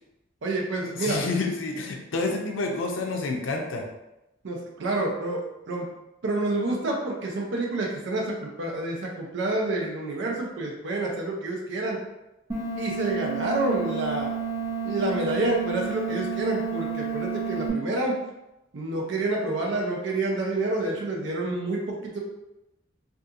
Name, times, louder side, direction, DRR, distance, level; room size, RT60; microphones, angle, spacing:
voice 1, 0.4-1.2 4.4-5.9 6.2-12.0 12.8-14.3 14.8-18.2 18.7-22.2, right 2 dB, 65° right, -1 dB, 0.5 m, -28 dB
voice 2, 1.0-3.8, left 3 dB, 80° left, 2 dB, 0.5 m, -29 dB
sound 1, 12.5-17.7, right 6 dB, 20° right, 0.5 m, -31 dB
2.7 x 2.4 x 2.4 m, 0.93 s
head